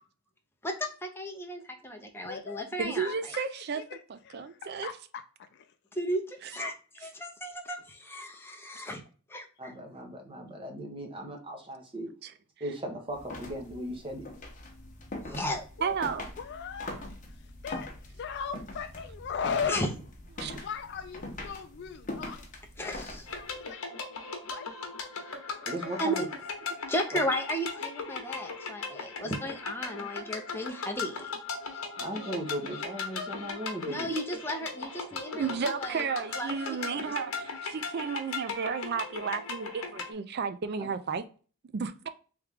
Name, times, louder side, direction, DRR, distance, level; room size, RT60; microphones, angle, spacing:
voice 1, 0.6-3.1 5.9-9.0 9.3-9.7 15.2-15.6 19.7-19.9 22.8-23.2 26.0-26.3 26.9-31.4 33.9-36.1 36.3-37.3, equal, 10° left, 0.6 m, -35 dB
voice 2, 2.2-2.7 3.1-5.7 15.8-16.0 16.4-19.9 20.5-22.4 22.8-23.0 23.3-24.1 24.4-24.7, left 6 dB, 50° left, 0.3 m, -38 dB
voice 3, 2.8-3.8 4.1-4.9 12.2-12.3 15.8-16.2 20.4-20.7 35.4-41.2 41.7-42.1, right 6 dB, 45° right, 0.3 m, -33 dB
voice 4, 9.6-12.1 12.6-14.2 25.6-26.3 29.2-29.3 31.9-34.1 40.8-40.9, right 1 dB, 25° right, 0.9 m, -37 dB
sound 1, 13.1-23.6, left 2 dB, 35° left, 0.9 m, -43 dB
sound 2, 23.3-40.1, left 4 dB, 65° left, 1.0 m, -38 dB
3.5 x 3.2 x 3.4 m
head